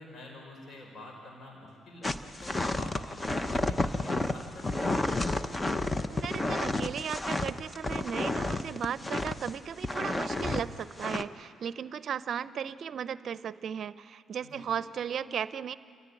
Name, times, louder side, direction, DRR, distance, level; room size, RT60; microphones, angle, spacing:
voice 1, 0.0-5.2 14.4-14.7, left 1 dB, 55° left, 0 dB, 5.2 m, -47 dB
sound 1, 2.0-9.5 9.8-10.6 11.0-11.2, left 2 dB, 20° left, 1.0 m, -31 dB
voice 2, 6.1-15.7, right 8 dB, 60° right, 15 dB, 0.6 m, -36 dB
28.5 x 14.5 x 9.8 m, 2.3 s
cardioid pair, 90°, 0 cm